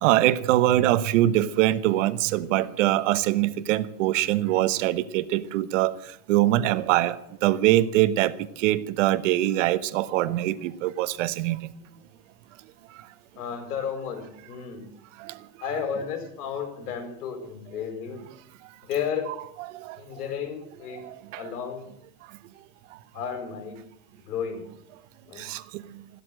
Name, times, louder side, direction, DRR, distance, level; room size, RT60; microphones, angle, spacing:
voice 1, 0.0-5.9 6.3-11.6 15.2-15.3 19.8-20.0 21.0-21.4 25.4-25.6, right 14 dB, 55° right, 1.1 m, -23 dB
voice 2, 13.4-14.8 15.6-18.3 18.8-19.3 20.0-21.0 21.3-21.9 23.1-23.8 24.3-24.7 25.2-25.5, left 7 dB, 85° left, 5.1 m, -33 dB
14.5 x 13.0 x 7.7 m
supercardioid pair, 160°, 44 cm